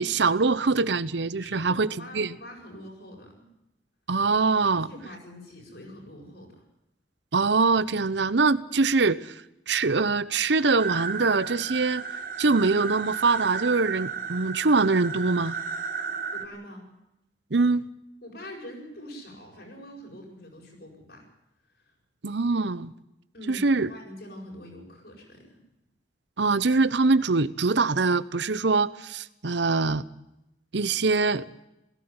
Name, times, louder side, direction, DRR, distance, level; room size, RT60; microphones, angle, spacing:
voice 1, 0.0-1.9 2.1-2.3 4.1-4.9 7.3-9.3 9.7-12.0 12.4-15.5 17.5-17.9 22.2-22.9 23.5-23.9 26.4-30.0 30.7-31.5, right 3 dB, 75° right, 17 dB, 0.8 m, -23 dB
voice 2, 1.4-3.5 4.6-6.6 16.3-16.9 18.2-21.3 21.8-21.9 23.3-25.6, equal, 60° left, 0 dB, 7.8 m, -44 dB
sound 1, 10.8-16.5, right 6 dB, 50° right, 1.6 m, -33 dB
18.0 x 16.0 x 9.6 m, 0.88 s
head